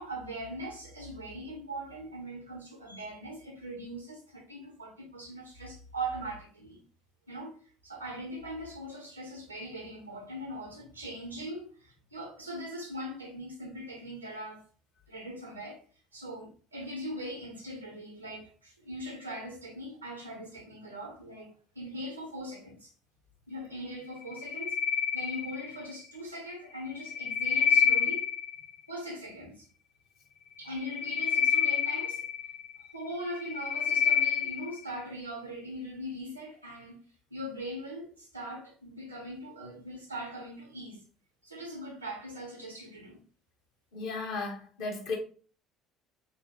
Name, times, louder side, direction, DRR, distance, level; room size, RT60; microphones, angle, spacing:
voice 1, 0.0-6.8 7.3-7.5 7.8-14.7 15.1-15.8 16.1-22.9 23.5-24.8 25.1-28.3 28.9-29.7 30.6-32.3 32.9-37.0 37.3-41.0 41.4-43.2, right 1 dB, 90° right, 0.6 m, -41 dB
sound 1, 24.2-25.9 26.9-28.7 30.7-32.8 33.3-34.8, left 7 dB, 20° left, 0.4 m, -28 dB
voice 2, 43.9-45.2, left 3 dB, 65° left, 0.8 m, -35 dB
2.6 x 2.1 x 2.8 m
figure-of-eight pair, 55°, 0 cm